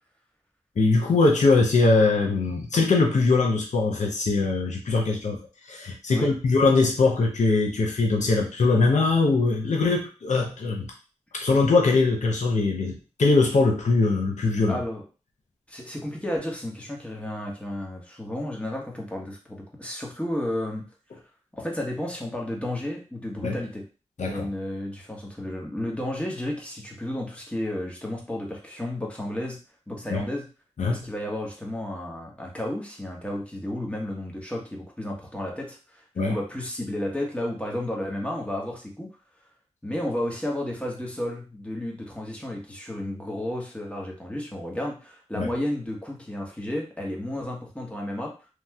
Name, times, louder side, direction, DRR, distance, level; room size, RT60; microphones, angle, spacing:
voice 1, 0.8-5.4 5.7-10.9 11.3-14.8 23.4-23.6 24.2-24.5 30.1-30.2 30.8-31.1 36.2-36.4 45.4-45.5, left 3 dB, 80° left, 1 dB, 0.6 m, -22 dB
voice 2, 14.7-15.0 15.7-20.8 21.5-23.8 24.2-29.6 29.9-30.5 30.9-39.1 39.8-48.3, left 1 dB, 10° left, -1 dB, 1.1 m, -32 dB
3.0 x 2.7 x 2.3 m, 0.34 s
cardioid pair, 40°, 12 cm